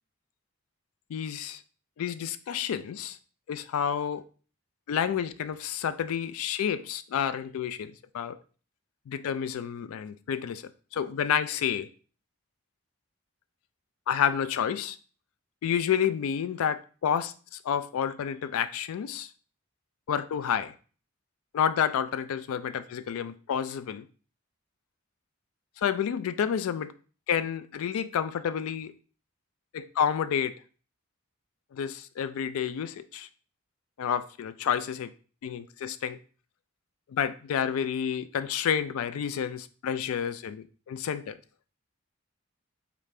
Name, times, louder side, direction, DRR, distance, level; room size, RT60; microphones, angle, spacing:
voice 1, 1.1-1.6 2.0-3.2 3.5-4.2 4.9-8.4 9.1-11.9 14.1-15.0 15.6-19.3 20.1-20.7 21.5-24.1 25.8-26.9 27.3-28.9 29.7-30.6 31.7-33.3 34.0-35.1 35.4-36.2 37.1-41.4, left 8 dB, 80° left, 0.3 m, -29 dB
4.9 x 2.5 x 3.2 m
head